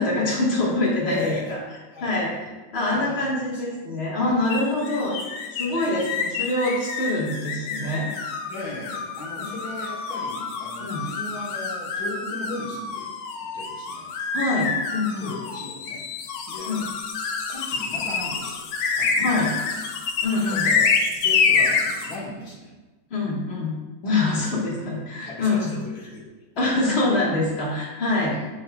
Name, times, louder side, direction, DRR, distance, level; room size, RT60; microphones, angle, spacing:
voice 1, 0.0-1.2 2.0-2.3 2.7-5.2 5.5-8.1 9.4-9.5 10.8-11.0 14.3-15.3 16.7-16.9 19.2-19.5 20.2-20.7 23.1-23.7 24.0-25.7 26.6-28.3, left 2 dB, 35° left, -5 dB, 1.6 m, -24 dB
voice 2, 1.1-1.6 1.9-2.4 2.9-3.6 4.2-4.4 5.7-5.9 8.5-13.1 13.4-14.1 15.2-16.0 16.5-16.9 17.5-18.7 19.0-19.6 20.5-22.7 24.0-24.9 25.2-26.2 26.6-26.7 28.2-28.5, left 2 dB, 60° left, -4 dB, 1.7 m, -37 dB
sound 1, 4.5-22.2, left 5 dB, 75° left, 1.3 m, -27 dB
9.8 x 4.2 x 2.3 m, 1.2 s
omnidirectional pair, 2.0 m